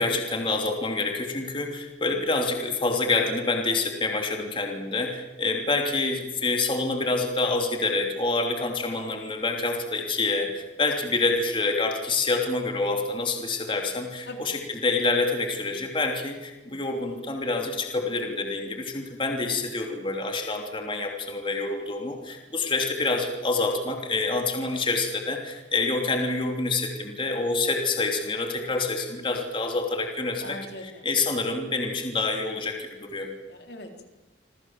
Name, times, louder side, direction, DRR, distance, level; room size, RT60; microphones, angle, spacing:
voice 1, 0.0-33.3, left 3 dB, 30° left, 3 dB, 3.1 m, -27 dB
voice 2, 30.4-31.1 33.5-34.1, left 1 dB, 65° left, 4 dB, 3.9 m, -40 dB
28.0 x 25.0 x 7.6 m, 1.1 s
head